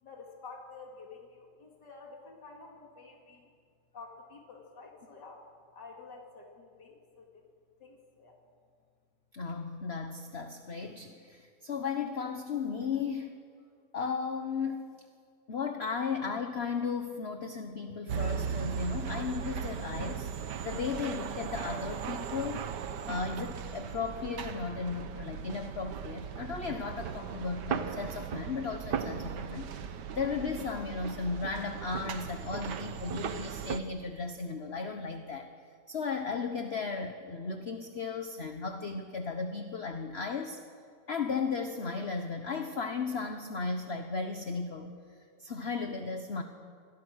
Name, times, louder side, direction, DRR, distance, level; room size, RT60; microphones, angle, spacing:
voice 1, 0.0-3.5 3.9-5.4 5.7-7.5 7.8-8.4, left 4 dB, 75° left, 0 dB, 3.3 m, -50 dB
voice 2, 9.3-13.4 13.9-14.9 15.5-20.3 20.6-22.6 23.1-35.5 35.9-40.6 41.1-44.9 45.4-46.4, left 5 dB, 40° left, 6 dB, 1.3 m, -35 dB
sound 1, 18.1-33.8, right 7 dB, 75° right, 1.6 m, -37 dB
27.0 x 24.5 x 6.5 m, 2.3 s
omnidirectional pair, 1.9 m